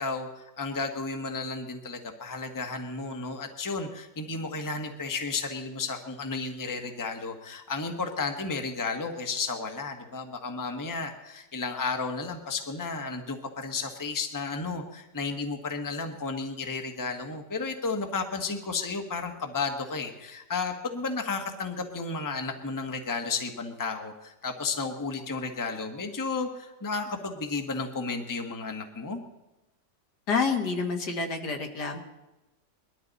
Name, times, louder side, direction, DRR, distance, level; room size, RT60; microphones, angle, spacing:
voice 1, 0.0-29.2, left 4 dB, 15° left, 4 dB, 1.1 m, -33 dB
voice 2, 30.3-32.0, left 4 dB, 70° left, 4 dB, 2.1 m, -28 dB
20.5 x 12.5 x 4.1 m, 1.0 s
omnidirectional pair, 1.8 m